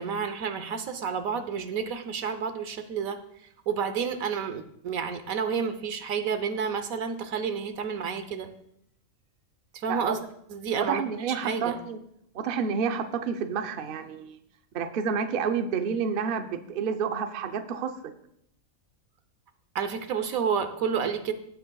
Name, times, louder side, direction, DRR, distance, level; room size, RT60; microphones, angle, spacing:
voice 1, 0.0-3.2 3.7-8.5 9.7-10.2 10.5-11.0 11.3-11.7 19.7-21.3, right 6 dB, 80° right, 9 dB, 1.3 m, -30 dB
voice 2, 10.8-12.0 12.3-14.4 14.7-18.1, right 6 dB, 50° right, 7 dB, 0.8 m, -29 dB
16.0 x 8.0 x 2.3 m, 0.72 s
omnidirectional pair, 1.4 m